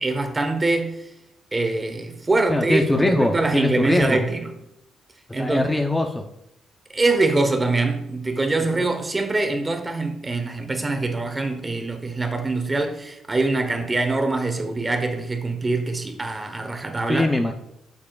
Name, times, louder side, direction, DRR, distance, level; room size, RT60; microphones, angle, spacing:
voice 1, 0.0-1.1 1.5-4.5 5.3-5.6 6.9-17.3, right 2 dB, 25° right, 1.1 m, -24 dB
voice 2, 2.5-4.2 5.4-6.2 8.7-8.9 17.1-17.5, left 1 dB, 10° left, 0.6 m, -22 dB
9.2 x 7.2 x 2.4 m
cardioid pair, 90°, 0 cm